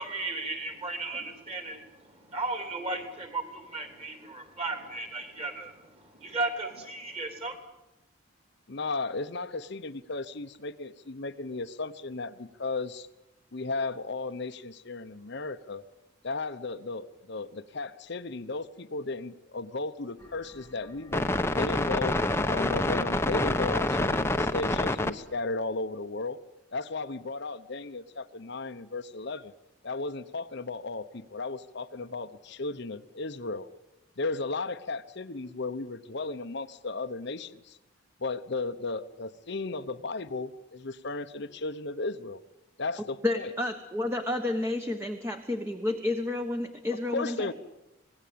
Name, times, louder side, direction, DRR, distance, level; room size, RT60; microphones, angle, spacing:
voice 1, 0.0-7.6, right 2 dB, 30° right, 6 dB, 3.6 m, -35 dB
voice 2, 8.7-13.1 13.5-15.8 16.2-21.3 21.5-22.2 22.4-26.4 26.7-29.5 29.8-33.7 34.2-37.8 38.2-42.4 42.8-43.5 47.1-47.5, left 3 dB, 55° left, 10 dB, 0.9 m, -35 dB
sound 1, 21.1-25.1, left 2 dB, 10° left, 0.9 m, -27 dB
voice 3, 43.2-47.5, left 2 dB, 10° right, 6 dB, 1.2 m, -30 dB
26.0 x 20.0 x 8.7 m, 0.93 s
head